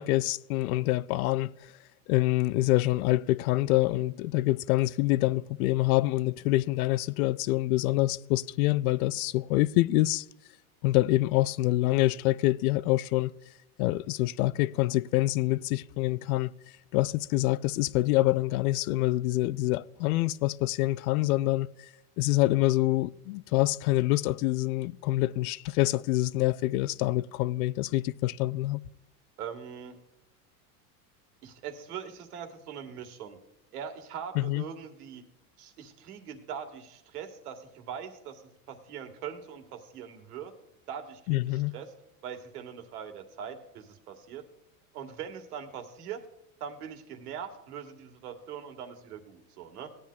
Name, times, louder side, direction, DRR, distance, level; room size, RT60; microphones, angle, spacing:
voice 1, 0.0-1.5 2.1-10.2 10.8-13.3 13.8-16.5 16.9-21.7 22.2-28.8 34.4-34.6 41.3-41.7, left 18 dB, 75° left, 0.5 m, -26 dB
voice 2, 29.4-30.0 31.4-33.4 33.7-35.2 35.6-38.4 38.7-40.5 40.9-41.9 42.2-44.4 44.9-46.2 46.6-49.9, right 8 dB, 90° right, 1.9 m, -41 dB
17.5 x 10.0 x 2.4 m
supercardioid pair, 125°, 44 cm